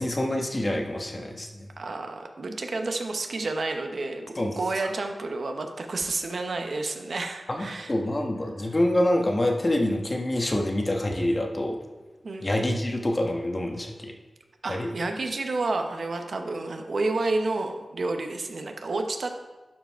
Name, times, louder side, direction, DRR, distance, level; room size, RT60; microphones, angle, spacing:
voice 1, 0.0-1.5 4.4-4.6 7.5-11.8 12.4-14.1 14.7-14.9, left 1 dB, 30° left, 2 dB, 1.1 m, -26 dB
voice 2, 1.8-7.9 12.2-12.5 14.6-19.3, right 3 dB, 70° right, 5 dB, 0.9 m, -30 dB
11.5 x 5.0 x 4.6 m, 1.2 s
wide cardioid pair, 105°, 0 cm